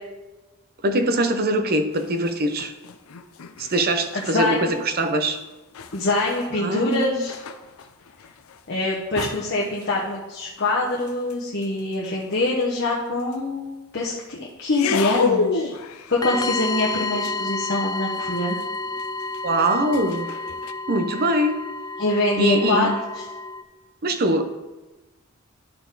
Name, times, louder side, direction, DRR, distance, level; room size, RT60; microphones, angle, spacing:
voice 1, 0.8-2.7 3.6-5.4 6.6-7.3 19.4-20.3 20.9-21.6 22.4-22.9 24.0-24.5, right 1 dB, 45° right, 8 dB, 0.7 m, -22 dB
sound 1, 1.9-4.4 4.7-4.9 5.2-12.5 13.2-13.4 14.7-20.7, left 5 dB, 70° left, 0.5 m, -32 dB
voice 2, 4.1-4.7 5.9-7.4 8.7-15.7 16.1-18.6 22.0-23.2, left 2 dB, 50° left, -5 dB, 1.0 m, -24 dB
sound 2, 16.2-23.6, left 3 dB, 20° left, 0.3 m, -30 dB
12.0 x 4.3 x 3.9 m, 1.2 s
head